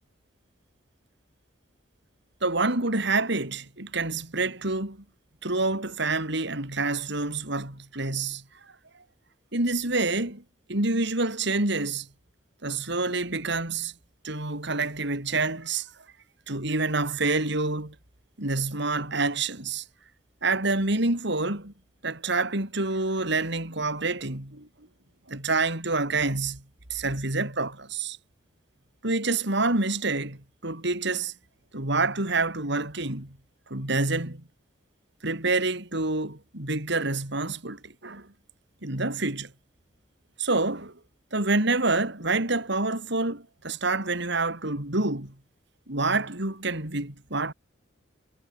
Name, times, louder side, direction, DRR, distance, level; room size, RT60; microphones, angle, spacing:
voice 1, 2.4-5.0 5.4-8.4 9.5-10.4 10.7-12.1 12.6-13.9 14.2-15.9 16.5-17.9 18.4-19.8 20.4-21.7 22.0-24.7 25.3-26.6 26.9-28.2 29.0-31.3 31.7-33.4 33.7-34.4 35.2-38.3 38.8-39.5 40.4-41.0 41.3-45.3 45.9-47.5, right 3 dB, 65° right, 4.9 m, -27 dB
head